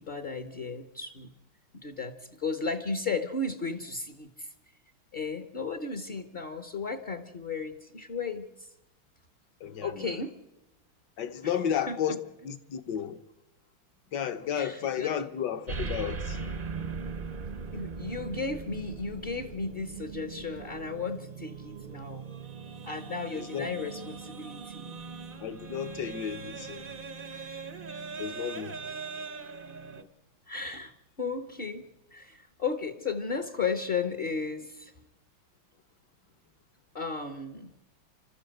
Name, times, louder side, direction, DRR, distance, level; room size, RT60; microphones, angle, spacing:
voice 1, 0.0-1.3 1.7-4.5 5.1-8.7 9.8-10.4 11.9-12.0 14.5-15.1 17.7-22.2 22.8-25.0 27.3-27.4 30.5-30.9 31.2-34.9 36.9-37.7, left 4 dB, 40° left, 0.9 m, -34 dB
voice 2, 9.6-10.2 11.2-12.2 12.4-13.2 14.1-16.5 23.3-23.7 25.4-26.9 28.2-28.8 30.0-30.1, left 8 dB, 60° left, 1.5 m, -33 dB
sound 1, 15.7-30.0, right 5 dB, 45° right, 0.7 m, -40 dB
29.0 x 13.0 x 7.9 m
omnidirectional pair, 2.3 m